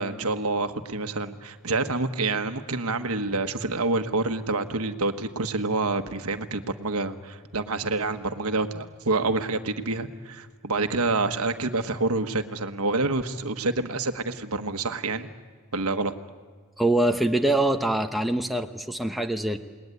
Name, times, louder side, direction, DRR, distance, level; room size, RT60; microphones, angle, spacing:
voice 1, 0.0-15.3 15.7-16.1, right 3 dB, 85° right, 8 dB, 1.4 m, -27 dB
voice 2, 16.8-19.6, right 1 dB, ahead, 4 dB, 1.0 m, -24 dB
28.5 x 20.0 x 9.6 m, 1.5 s
head